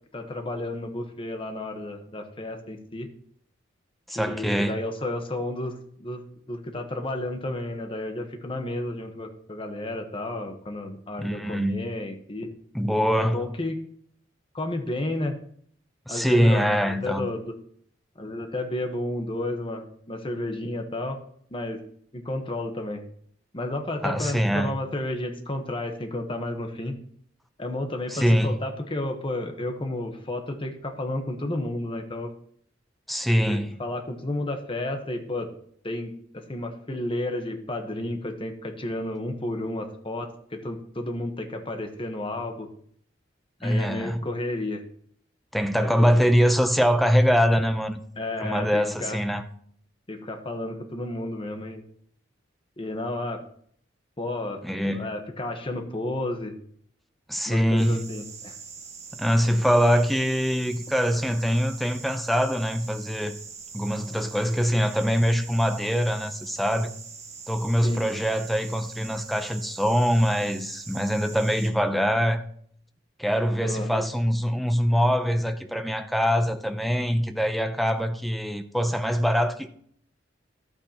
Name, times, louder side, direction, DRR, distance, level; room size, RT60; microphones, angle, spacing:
voice 1, 0.1-3.1 4.1-6.2 6.5-12.5 13.2-13.8 14.5-15.4 16.1-17.5 18.2-21.2 21.5-21.8 22.1-23.0 23.5-27.0 27.6-32.3 33.5-35.5 35.8-42.7 43.6-44.8 45.7-46.1 48.2-49.2 50.1-51.8 52.8-53.4 54.2-56.6 57.5-58.6 67.8-68.0 73.6-74.0, left 1 dB, 30° left, 1.2 m, -32 dB
voice 2, 4.1-4.8 11.2-11.8 12.7-13.5 16.1-17.3 24.0-24.7 28.1-28.6 33.1-33.7 43.6-44.2 45.5-48.0 48.4-49.4 54.6-55.1 57.3-58.1 59.1-63.4 63.7-66.9 67.5-72.4 73.2-79.7, equal, ahead, 0.6 m, -23 dB
sound 1, 57.8-71.7, right 5 dB, 35° right, 1.6 m, -43 dB
12.0 x 8.5 x 3.0 m
head